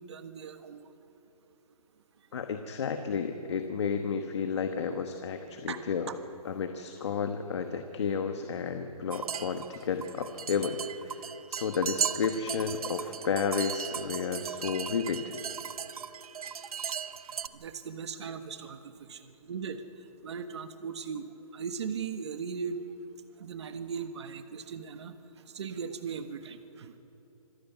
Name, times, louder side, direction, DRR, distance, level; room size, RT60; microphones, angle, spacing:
voice 1, 0.1-0.8 5.7-5.8 6.1-6.2 17.5-19.8 20.2-21.2 21.5-22.8 23.4-25.1 25.5-26.9, right 6 dB, 45° right, 9 dB, 1.4 m, -38 dB
voice 2, 2.3-6.1 6.4-15.3, left 6 dB, 45° left, 6 dB, 1.2 m, -32 dB
sound 1, 9.1-17.5, right 7 dB, 70° right, 0.9 m, -36 dB
26.0 x 13.0 x 9.1 m, 2.9 s
hypercardioid pair, 170°, 20 cm